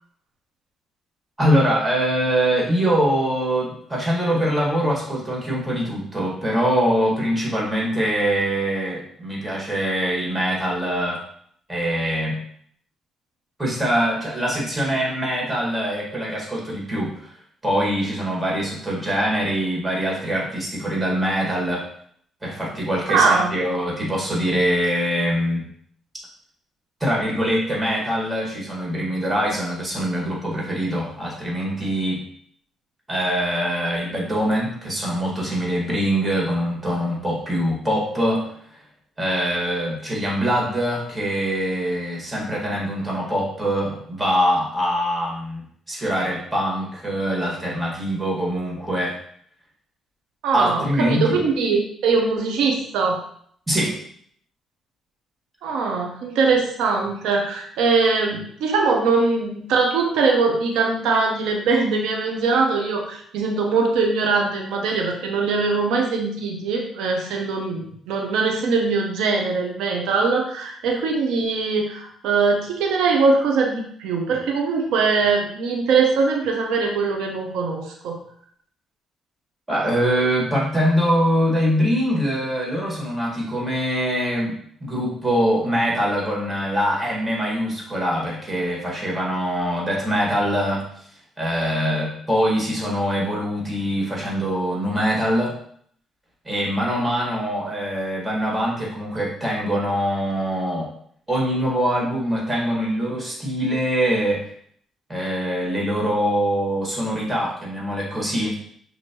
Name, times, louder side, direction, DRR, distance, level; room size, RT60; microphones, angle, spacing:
voice 1, 1.4-11.2 11.7-12.4 13.6-17.1 17.6-21.8 22.4-25.6 27.0-32.2 33.1-38.5 39.2-49.2 50.5-51.4 53.7-54.0 79.7-84.6 84.8-90.9 91.4-95.5 96.4-100.9 101.3-104.5 105.1-108.6, equal, 15° right, -4 dB, 1.9 m, -23 dB
voice 2, 23.1-23.5 50.4-53.2 55.6-78.2, right 4 dB, 90° right, 1 dB, 0.7 m, -21 dB
6.2 x 2.6 x 3.0 m, 0.63 s
cardioid pair, 90°, 0 cm